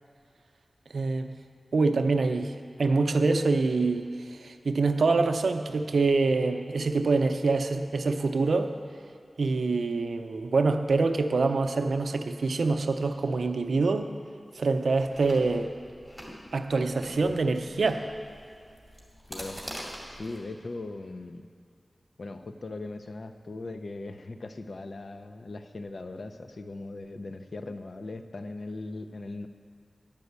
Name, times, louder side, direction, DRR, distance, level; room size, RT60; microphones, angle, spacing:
voice 1, 0.9-1.3 1.7-2.5 2.8-8.7 9.4-14.1 14.6-15.7 16.5-18.0, right 3 dB, 85° right, 7 dB, 0.5 m, -25 dB
Chewing mastication, 15.0-20.4, equal, 10° left, 2.2 m, -44 dB
voice 2, 19.3-19.6 20.1-21.4 22.2-29.5, left 2 dB, 65° left, 8 dB, 0.5 m, -39 dB
10.5 x 5.3 x 8.1 m, 2.3 s
wide cardioid pair, 90°, 0 cm